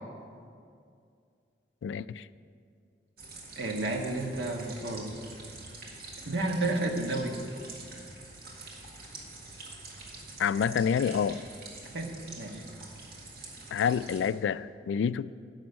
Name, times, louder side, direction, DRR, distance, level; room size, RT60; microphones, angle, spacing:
voice 1, 1.8-2.3 10.4-11.4 13.7-15.3, left 7 dB, 90° left, 17 dB, 0.3 m, -28 dB
sound 1, 3.2-14.3, right 2 dB, 55° right, 1.9 m, -46 dB
voice 2, 3.5-5.1 6.2-7.4 11.9-12.6, right 2 dB, 75° right, 2 dB, 1.4 m, -31 dB
10.5 x 6.2 x 8.2 m, 2.3 s
head